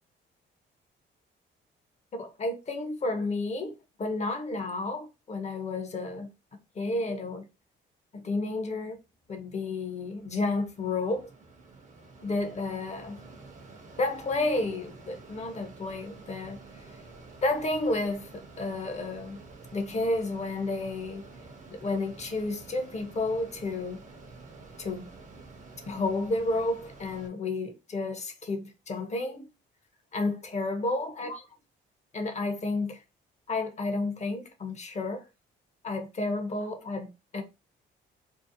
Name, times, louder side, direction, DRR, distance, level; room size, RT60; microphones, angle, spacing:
voice 1, 2.2-6.3 6.8-7.5 8.1-9.0 9.3-11.3 12.2-13.2 14.0-16.6 17.4-19.4 19.7-21.3 21.7-24.0 24.8-25.1 25.9-29.5 30.1-31.4 32.1-33.0 33.5-35.2 35.8-37.4, left 2 dB, 35° left, 0.6 m, -31 dB
Mechanisms, 9.3-27.3, right 3 dB, 40° right, 0.6 m, -49 dB
2.7 x 2.0 x 2.5 m
cardioid pair, 90°, 20 cm